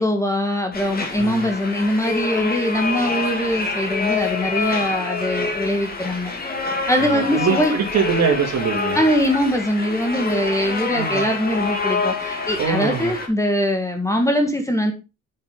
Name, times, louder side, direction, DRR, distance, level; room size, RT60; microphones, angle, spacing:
voice 1, 0.0-6.3 6.9-7.7 8.9-14.9, equal, 10° left, 5 dB, 1.8 m, -22 dB
sound 1, 0.7-13.3, left 3 dB, 30° left, 2.2 m, -26 dB
voice 2, 7.0-9.0 10.9-11.3 12.6-13.1, right 6 dB, 60° right, 3 dB, 2.8 m, -23 dB
9.3 x 6.7 x 3.9 m, 0.27 s
cardioid pair, 135°, 29 cm